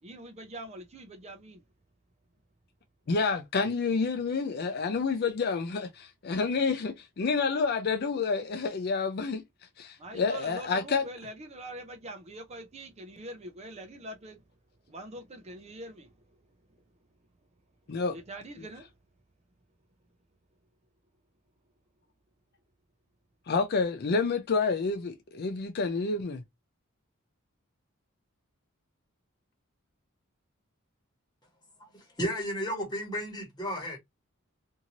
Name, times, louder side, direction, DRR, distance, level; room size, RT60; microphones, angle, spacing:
voice 1, 0.0-1.6 10.0-14.4 14.9-16.1 18.1-18.9, right 1 dB, 30° right, 0.5 m, -44 dB
voice 2, 3.1-9.4 9.8-11.1 17.9-18.2 23.5-26.4, left 4 dB, 50° left, 0.5 m, -29 dB
voice 3, 31.9-34.0, equal, 20° left, 1.2 m, -33 dB
2.7 x 2.6 x 2.8 m
head